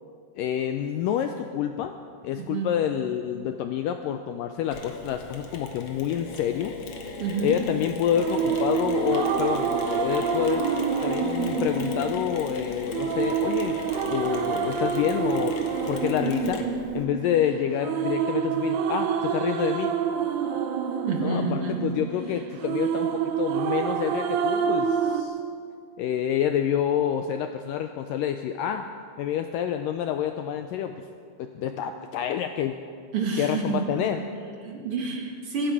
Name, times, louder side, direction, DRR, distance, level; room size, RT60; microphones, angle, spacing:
voice 1, 0.4-1.9 2.2-6.7 7.4-10.7 11.0-15.6 15.9-16.6 16.9-19.9 21.2-25.4 26.0-28.9 29.2-30.9 31.4-32.8 33.4-34.2, left 10 dB, 90° left, 7 dB, 1.9 m, -28 dB
voice 2, 2.4-2.7 7.2-7.6 21.1-21.8 33.1-34.0 34.4-35.7, right 4 dB, 45° right, 0 dB, 2.3 m, -29 dB
Mechanisms, 4.7-17.0, left 3 dB, 55° left, 2.1 m, -36 dB
sound 1, 8.2-25.2, right 7 dB, 85° right, 2.8 m, -27 dB
24.5 x 11.5 x 4.8 m, 2.2 s
omnidirectional pair, 4.5 m